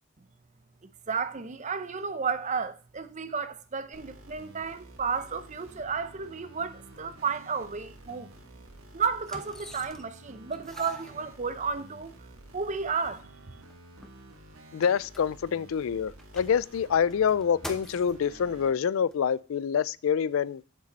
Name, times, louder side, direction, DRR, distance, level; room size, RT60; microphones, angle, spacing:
voice 1, 1.1-8.3 8.9-12.1 12.5-13.6, right 5 dB, 35° right, 0.7 m, -32 dB
sound 1, 3.9-18.7, right 1 dB, 85° right, 1.6 m, -51 dB
sound 2, 9.2-10.2 10.5-11.9 12.6-12.7 13.0-13.1 13.5-15.7 16.1-18.3 19.1-19.2, left 1 dB, ahead, 0.8 m, -46 dB
voice 2, 14.7-20.7, left 7 dB, 70° left, 0.4 m, -26 dB
7.6 x 7.3 x 4.1 m
head